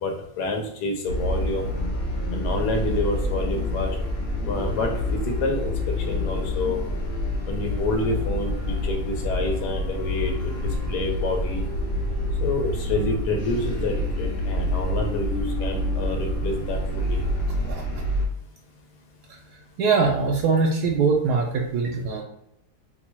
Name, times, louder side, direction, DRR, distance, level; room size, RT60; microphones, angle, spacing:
voice 1, 0.0-1.7 2.3-4.0 4.5-5.7 6.1-6.8 7.5-10.5 10.9-11.6 12.4-17.2, left 2 dB, 80° left, 2 dB, 1.3 m, -28 dB
sound 1, 1.1-18.3, left 1 dB, 55° left, 0.7 m, -27 dB
voice 2, 17.7-18.0 19.8-22.2, right 4 dB, 80° right, 0 dB, 1.1 m, -22 dB
3.0 x 2.2 x 4.2 m, 0.78 s
omnidirectional pair, 1.7 m